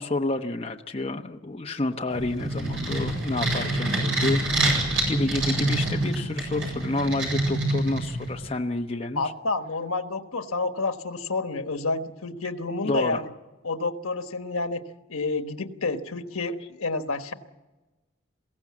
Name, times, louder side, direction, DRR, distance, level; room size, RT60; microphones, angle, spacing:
voice 1, 0.0-4.4 4.7-9.3 12.8-13.2, left 2 dB, 25° left, 3 dB, 0.9 m, -29 dB
sound 1, 2.1-8.4, right 1 dB, 65° right, 7.9 m, -26 dB
voice 2, 9.2-13.3 13.6-17.3, left 3 dB, 85° left, 8 dB, 1.3 m, -29 dB
22.0 x 16.5 x 8.5 m, 1.1 s
head